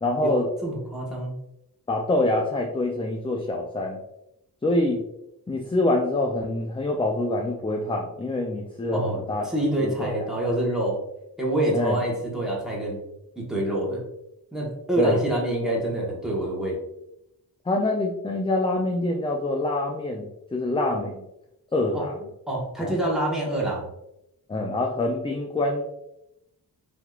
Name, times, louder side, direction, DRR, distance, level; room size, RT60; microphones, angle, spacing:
voice 1, 0.0-0.5 1.9-4.0 4.6-5.0 5.5-9.4 9.8-10.5 11.7-12.0 15.0-15.2 17.7-21.2 21.7-22.3 22.8-23.0 24.5-25.8, left 2 dB, 15° left, 1 dB, 0.3 m, -25 dB
voice 2, 0.6-1.3 8.9-11.0 11.4-13.0 13.4-14.0 14.5-16.8 21.9-22.0 22.5-23.9, right 1 dB, ahead, -4 dB, 1.2 m, -26 dB
3.5 x 2.9 x 2.4 m, 0.84 s
wide cardioid pair, 80°, 38 cm